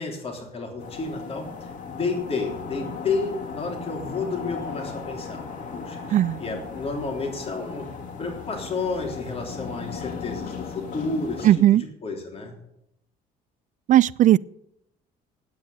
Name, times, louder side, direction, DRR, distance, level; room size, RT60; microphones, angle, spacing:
voice 1, 0.0-5.4 5.7-7.9 8.2-12.6, left 3 dB, 35° left, 3.4 m, -31 dB
sound 1, 0.8-11.5, left 5 dB, 50° left, 3.0 m, -36 dB
voice 2, 11.4-11.8 13.9-14.4, right 13 dB, 50° right, 0.4 m, -16 dB
8.8 x 8.4 x 9.2 m
cardioid pair, 110°, 17 cm